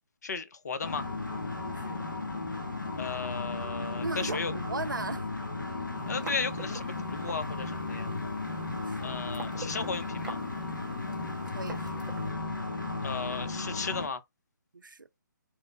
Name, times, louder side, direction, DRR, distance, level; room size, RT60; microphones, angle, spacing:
voice 1, 0.2-1.1 3.0-4.5 6.1-8.1 9.0-10.4 13.0-14.2, left 5 dB, 60° left, 0.5 m, -35 dB
sound 1, 0.8-14.1, left 3 dB, 80° left, 1.0 m, -35 dB
voice 2, 1.6-2.0 4.0-5.3 8.8-9.1 11.5-12.0 14.7-15.1, right 3 dB, 85° right, 0.4 m, -38 dB
sound 2, 5.9-12.3, right 3 dB, 5° right, 0.5 m, -47 dB
3.0 x 2.0 x 3.3 m
figure-of-eight pair, 140°, 10 cm